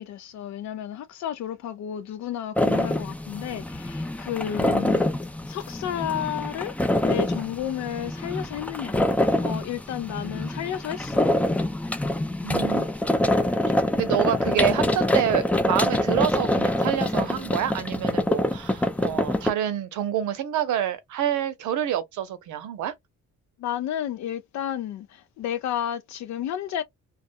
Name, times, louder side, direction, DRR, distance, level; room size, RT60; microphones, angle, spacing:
voice 1, 0.0-5.1 5.5-6.7 7.0-9.0 9.4-11.2 23.6-26.8, left 10 dB, 70° left, 0.4 m, -32 dB
sound 1, 2.6-19.5, left 1 dB, 5° left, 0.3 m, -25 dB
voice 2, 12.4-12.9 14.0-22.9, right 10 dB, 80° right, 0.7 m, -27 dB
2.4 x 2.3 x 2.5 m
cardioid pair, 90°, 30 cm